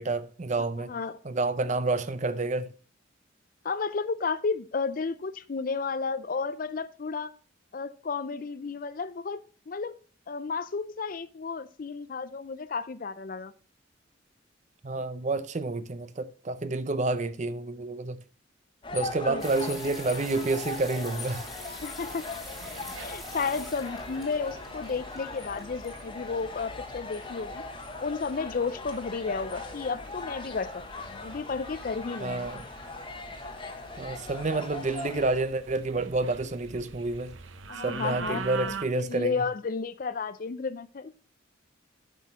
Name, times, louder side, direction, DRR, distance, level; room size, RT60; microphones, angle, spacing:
voice 1, 0.0-0.9 1.2-2.7 14.8-18.2 18.9-21.4 32.2-32.6 34.0-37.4 37.8-39.3, right 3 dB, 35° right, 0.6 m, -29 dB
voice 2, 0.8-1.2 3.6-7.3 7.7-10.0 10.3-13.5 19.3-19.5 21.8-22.3 23.0-27.6 28.0-32.5 37.7-41.1, left 4 dB, 45° left, 0.4 m, -32 dB
sound 1, 18.8-35.4, left 3 dB, 25° left, 1.0 m, -40 dB
sound 2, 19.4-26.6, left 1 dB, ahead, 1.6 m, -46 dB
sound 3, 21.2-38.8, right 5 dB, 80° right, 0.8 m, -45 dB
8.1 x 6.1 x 4.1 m
head